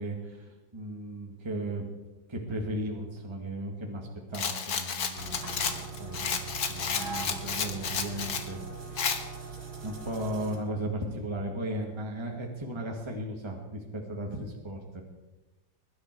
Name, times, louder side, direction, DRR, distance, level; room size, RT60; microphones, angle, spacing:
voice 1, 0.0-1.8 2.3-9.6 9.8-15.0, right 1 dB, 15° right, 0 dB, 1.9 m, -36 dB
Rattle, 4.3-8.5 9.0-9.2, left 6 dB, 60° left, 1.8 m, -31 dB
sound 1, 5.1-10.6, right 4 dB, 60° right, 3.3 m, -41 dB
21.5 x 12.0 x 4.7 m, 1.1 s
omnidirectional pair, 1.9 m